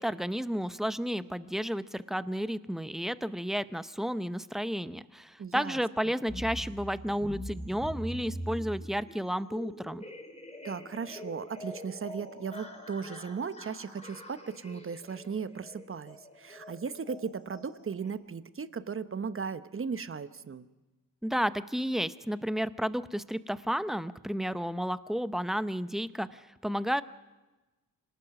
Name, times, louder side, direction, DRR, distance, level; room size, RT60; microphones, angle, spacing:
voice 1, 0.0-10.0 21.2-27.0, equal, ahead, 13 dB, 0.7 m, -32 dB
voice 2, 5.4-5.8 10.6-20.7, right 6 dB, 35° right, 13 dB, 1.0 m, -37 dB
sound 1, 6.3-18.1, equal, 20° left, 3.8 m, -44 dB
26.0 x 18.5 x 6.0 m, 1.1 s
cardioid pair, 90°, 35 cm